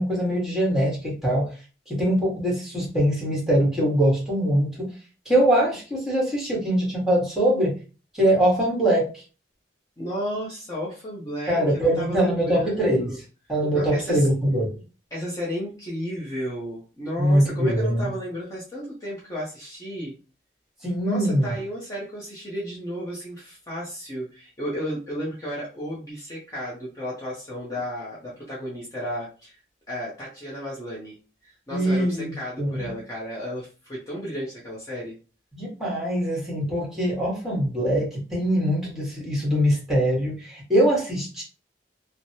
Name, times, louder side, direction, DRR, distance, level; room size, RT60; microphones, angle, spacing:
voice 1, 0.0-1.5 1.9-4.9 5.2-7.8 8.1-9.1 11.5-13.1 13.5-14.7 17.2-18.1 20.8-21.5 31.7-32.9 35.5-41.4, right 1 dB, ahead, -5 dB, 1.4 m, -22 dB
voice 2, 10.0-13.2 13.7-14.3 15.1-20.1 21.0-29.6 29.9-31.2 31.4-35.1, equal, 20° left, -6 dB, 0.8 m, -33 dB
3.2 x 2.1 x 2.7 m, 0.34 s
head